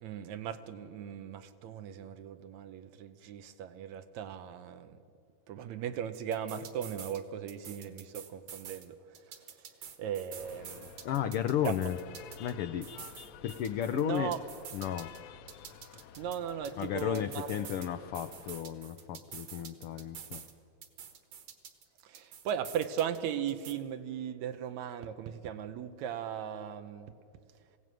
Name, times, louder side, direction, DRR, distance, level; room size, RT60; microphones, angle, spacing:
voice 1, 0.0-5.0 5.5-9.0 9.3-9.4 10.0-10.9 11.6-11.7 13.9-14.4 16.2-17.7 22.1-27.1, right 9 dB, 80° right, 9 dB, 2.2 m, -37 dB
sound 1, 6.1-7.2 7.5-8.9 9.1-12.5 12.8-15.2 15.5-17.9 18.1-20.5 20.8-23.2 23.5-23.7, right 8 dB, 60° right, 2.3 m, -48 dB
sound 2, 10.4-18.6, left 9 dB, 70° left, 1.8 m, -52 dB
voice 2, 11.0-12.0 12.4-12.9 13.4-14.3 14.7-15.1 16.8-20.4, left 10 dB, 90° left, 10 dB, 1.2 m, -33 dB
20.5 x 16.5 x 9.3 m, 2.4 s
omnidirectional pair, 3.3 m